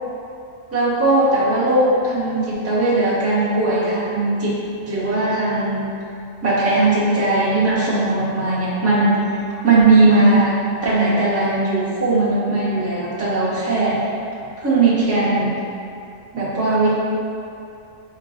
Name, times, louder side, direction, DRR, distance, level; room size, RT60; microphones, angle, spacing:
voice 1, 0.7-4.5 4.9-5.9 6.4-9.2 9.6-14.0 14.6-15.6 16.3-16.9, right 2 dB, 15° right, -9 dB, 0.6 m, -18 dB
3.7 x 3.7 x 2.4 m, 2.6 s
omnidirectional pair, 1.3 m